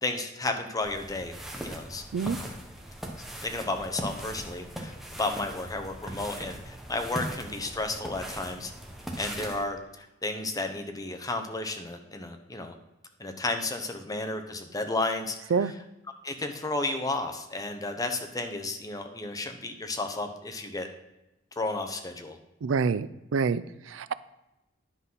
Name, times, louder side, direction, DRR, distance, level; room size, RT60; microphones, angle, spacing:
voice 1, 0.0-1.4 1.6-2.0 2.4-2.5 3.4-8.7 9.2-12.7 13.2-15.4 16.2-20.9 21.6-22.4, left 2 dB, 20° left, 5 dB, 0.9 m, -32 dB
sound 1, 0.8-9.6, right 1 dB, ahead, 1.1 m, -39 dB
voice 2, 22.6-24.1, right 5 dB, 90° right, 16 dB, 0.4 m, -27 dB
10.0 x 3.9 x 5.6 m, 0.96 s
head